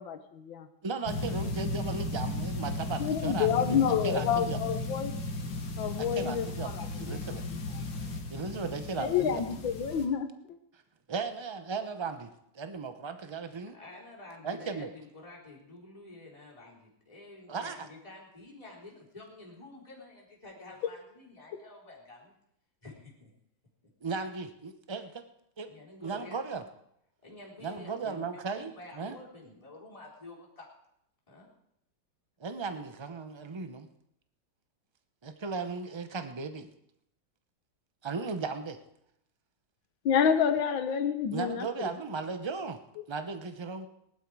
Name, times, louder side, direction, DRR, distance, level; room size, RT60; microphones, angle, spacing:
voice 1, 0.0-0.7 3.0-5.2 5.8-7.6 9.0-10.6 40.0-41.9, left 7 dB, 85° left, 9 dB, 1.9 m, -29 dB
voice 2, 0.8-4.6 6.0-7.4 8.3-9.4 11.1-12.3 12.5-13.7 14.4-14.9 17.5-17.9 24.0-25.2 25.6-25.7 26.0-26.6 27.6-29.2 32.4-33.9 35.2-36.7 38.0-38.8 41.3-42.8 43.1-43.9, right 4 dB, 45° right, 8 dB, 0.3 m, -36 dB
sound 1, 1.1-10.1, left 2 dB, 70° left, 2.4 m, -35 dB
voice 3, 13.7-22.3 22.8-23.3 23.8-23.9 25.7-26.4 27.2-30.7 31.3-31.5, left 2 dB, 15° left, -5 dB, 3.9 m, -49 dB
18.5 x 12.0 x 4.8 m, 0.77 s
omnidirectional pair, 2.1 m